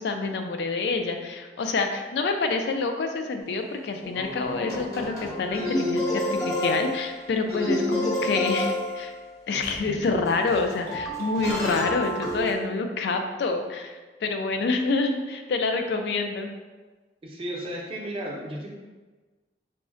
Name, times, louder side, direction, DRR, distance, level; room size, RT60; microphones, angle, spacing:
voice 1, 0.0-9.1 9.5-13.9 14.2-16.5, left 3 dB, 65° left, 5 dB, 0.3 m, -27 dB
sound 1, 3.4-3.5 4.0-12.5, left 1 dB, 20° left, 0.6 m, -29 dB
voice 2, 17.2-18.7, right 1 dB, 30° right, -2 dB, 0.5 m, -34 dB
3.6 x 2.1 x 2.5 m, 1.3 s
head